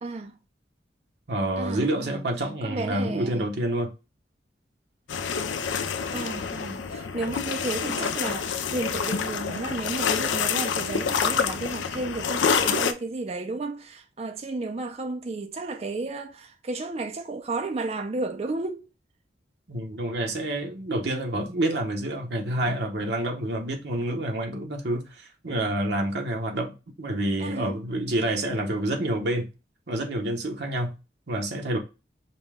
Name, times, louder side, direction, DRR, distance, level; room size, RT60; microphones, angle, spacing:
voice 1, 0.0-0.4 1.6-2.2 2.6-3.4 6.1-18.9 27.4-27.8, right 3 dB, 35° right, 0.4 m, -33 dB
voice 2, 1.3-3.9 19.7-29.5 29.9-31.0 31.3-31.8, right 1 dB, 70° right, 0.9 m, -28 dB
sound 1, 5.1-12.9, left 6 dB, 85° left, 0.4 m, -27 dB
5.3 x 2.2 x 3.4 m
head